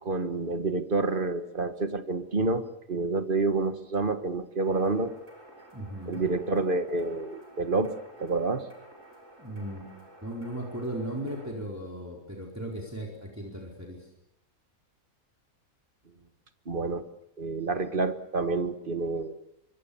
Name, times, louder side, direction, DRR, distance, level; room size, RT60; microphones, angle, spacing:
voice 1, 0.0-5.1 6.1-8.7 16.7-17.1 17.4-19.4, right 3 dB, 40° right, 9 dB, 1.7 m, -28 dB
sound 1, 4.6-11.5, right 1 dB, 60° right, 7.1 m, -52 dB
voice 2, 5.7-6.2 9.4-9.9 10.2-14.1, right 1 dB, 10° right, -1 dB, 4.5 m, -37 dB
25.5 x 24.5 x 7.1 m, 0.82 s
omnidirectional pair, 1.5 m